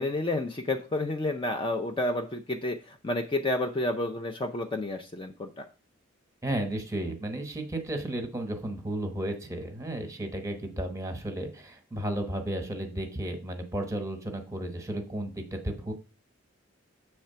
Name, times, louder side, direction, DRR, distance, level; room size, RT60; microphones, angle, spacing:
voice 1, 0.0-5.6, left 2 dB, 25° left, 4 dB, 0.4 m, -30 dB
voice 2, 6.4-15.9, right 1 dB, 15° right, 5 dB, 1.0 m, -33 dB
7.6 x 3.3 x 5.6 m, 0.35 s
head